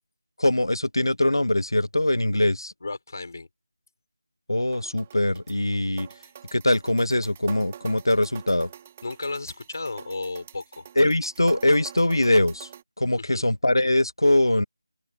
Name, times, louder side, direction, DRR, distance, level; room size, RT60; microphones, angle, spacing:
voice 1, 0.4-2.7 4.5-6.1 6.5-8.7 11.0-12.7 13.0-14.6, left 1 dB, 90° left, 0.5 m, -22 dB
voice 2, 2.8-3.5 9.0-10.9 13.2-13.4, left 3 dB, 50° left, 5.0 m, -34 dB
sound 1, 4.7-12.8, right 9 dB, 20° right, 1.1 m, -45 dB
open air
figure-of-eight pair, 165°, 2 cm